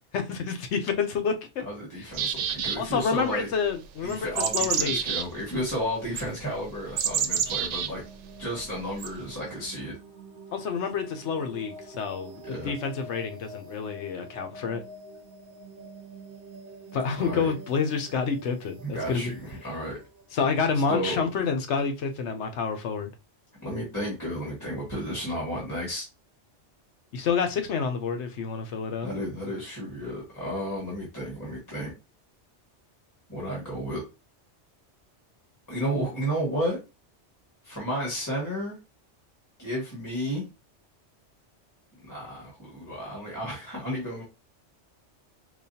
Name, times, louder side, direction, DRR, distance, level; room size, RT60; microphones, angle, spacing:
voice 1, 0.1-1.4 2.8-5.0 10.5-14.8 16.9-19.3 20.3-23.1 27.1-29.1, left 5 dB, 75° left, 1.0 m, -28 dB
voice 2, 1.6-3.5 4.0-8.0 8.4-9.9 12.4-12.7 17.2-17.5 18.8-20.0 20.9-21.2 23.6-26.0 29.0-31.9 33.3-34.0 35.7-36.8 37.6-38.8 39.6-40.4 42.0-44.2, equal, 15° left, 1.5 m, -32 dB
sound 1, 2.1-3.1 4.1-5.3 6.2-6.3 7.0-7.9 9.0-9.1, right 8 dB, 80° right, 0.9 m, -28 dB
sound 2, 6.8-21.5, right 1 dB, 55° right, 1.2 m, -47 dB
4.9 x 2.3 x 2.7 m
omnidirectional pair, 1.2 m